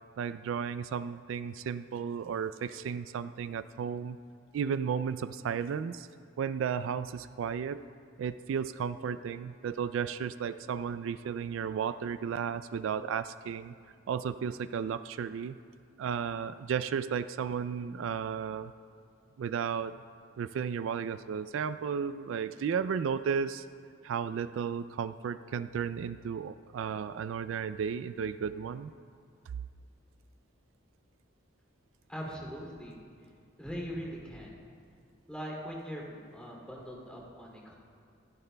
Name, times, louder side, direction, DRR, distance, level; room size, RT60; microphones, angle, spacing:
voice 1, 0.2-4.2 4.5-6.1 6.4-7.8 8.2-13.7 14.1-15.6 16.0-18.7 19.4-20.0 20.4-23.7 24.0-28.9, right 7 dB, 75° right, 13 dB, 0.3 m, -34 dB
voice 2, 32.1-33.0 33.6-34.6 35.3-37.7, equal, 5° left, -3 dB, 2.6 m, -41 dB
27.0 x 10.5 x 2.2 m, 2.2 s
head